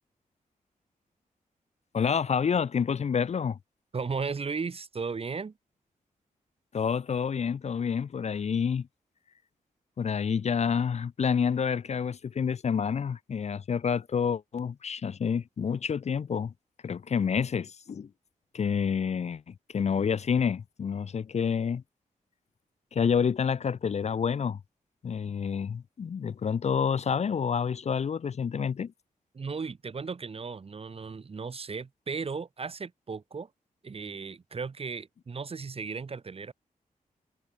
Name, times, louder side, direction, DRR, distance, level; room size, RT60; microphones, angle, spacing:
voice 1, 1.9-3.6 6.7-8.9 10.0-16.5 16.8-18.1 18.5-21.8 22.9-24.6 25.0-28.9, left 6 dB, 50° left, 0.7 m, -28 dB
voice 2, 3.9-5.5 29.3-33.5 33.8-36.5, right 5 dB, 40° right, 1.7 m, -35 dB
cardioid pair, 95°, 14 cm